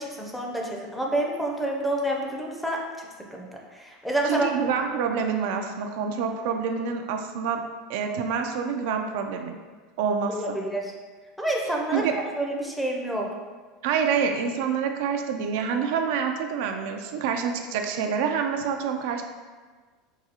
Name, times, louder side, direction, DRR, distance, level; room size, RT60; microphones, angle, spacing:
voice 1, 0.0-4.6 10.3-10.9 11.4-13.3, right 1 dB, 5° left, -1 dB, 0.5 m, -29 dB
voice 2, 4.3-7.6 7.9-9.6 10.0-10.6 11.9-12.1 13.8-19.2, right 6 dB, 70° right, 4 dB, 0.3 m, -27 dB
4.7 x 2.3 x 2.8 m, 1.4 s
supercardioid pair, 125°, 0 cm